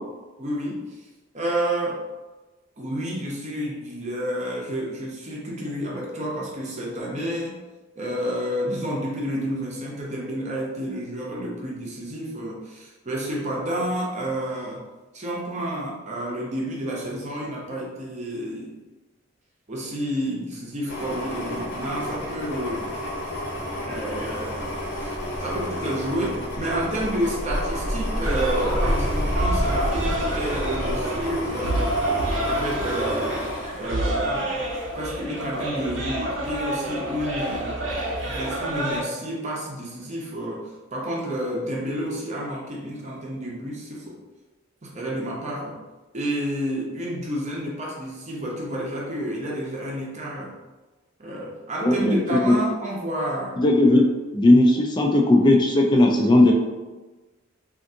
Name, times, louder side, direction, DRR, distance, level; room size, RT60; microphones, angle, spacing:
voice 1, 0.4-1.0 1.3-2.0 2.8-7.6 8.0-14.8 15.1-18.7 19.7-22.9 23.9-24.7 25.0-32.1 32.4-33.4 33.7-34.7 34.9-37.8 38.3-44.2 44.8-45.8 46.1-50.5 51.2-53.6 53.9-54.0, equal, 35° right, -3 dB, 0.7 m, -30 dB
sound 1, 20.9-34.6 35.0-35.1, equal, 55° left, 0.8 m, -29 dB
sound 2, 28.2-39.0, right 1 dB, 70° right, 0.7 m, -28 dB
voice 2, 51.8-52.6 53.6-54.1 54.3-56.5, left 1 dB, 20° left, 1 dB, 0.3 m, -17 dB
3.4 x 2.5 x 2.6 m, 1.2 s
head